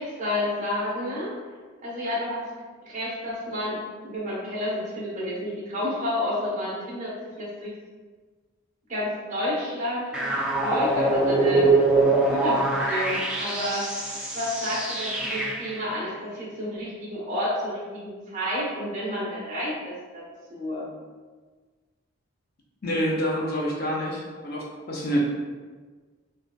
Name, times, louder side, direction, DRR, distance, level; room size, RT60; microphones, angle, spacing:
voice 1, 0.0-1.3 1.8-2.5 2.9-7.7 8.9-11.7 12.1-13.8 14.3-20.2 20.5-20.8, left 1 dB, 35° right, -7 dB, 1.0 m, -30 dB
sound 1, 10.1-15.8, right 2 dB, 5° right, 0.3 m, -23 dB
voice 2, 22.8-25.2, equal, 45° left, -3 dB, 0.6 m, -27 dB
4.9 x 2.4 x 2.3 m, 1.4 s
head